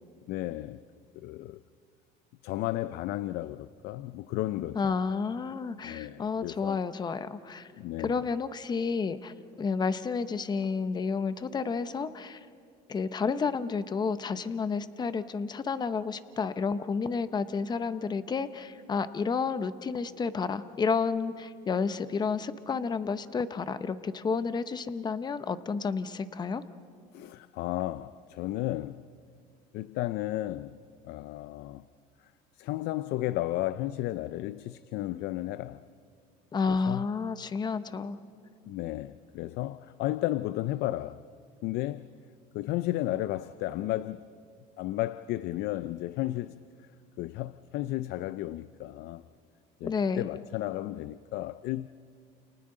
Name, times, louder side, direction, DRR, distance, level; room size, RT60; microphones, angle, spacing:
voice 1, 0.3-0.8 1.1-1.6 2.4-5.0 5.8-6.8 7.8-8.3 27.1-29.1 29.7-30.8 31.0-31.8 32.5-35.9 36.7-37.1 38.7-41.3 41.6-42.1 42.5-44.3 44.8-46.6 47.2-49.2 49.8-51.9, left 15 dB, 65° left, 0.5 m, -33 dB
voice 2, 4.7-7.7 8.0-12.4 12.9-26.6 36.5-38.2 49.8-50.2, left 5 dB, 25° left, 0.8 m, -31 dB
29.5 x 29.0 x 3.8 m
cardioid pair, 130°, 18 cm